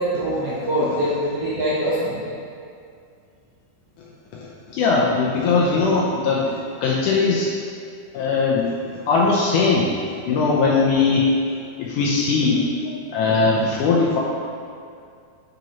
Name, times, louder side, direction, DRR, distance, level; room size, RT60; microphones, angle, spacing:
voice 1, 0.0-2.3, equal, 60° right, -9 dB, 1.7 m, -23 dB
voice 2, 4.3-7.5 8.1-9.9 10.2-11.3 11.8-12.7 13.1-14.2, left 4 dB, 75° left, -4 dB, 1.9 m, -20 dB
9.1 x 5.2 x 3.0 m, 2.3 s
omnidirectional pair, 4.1 m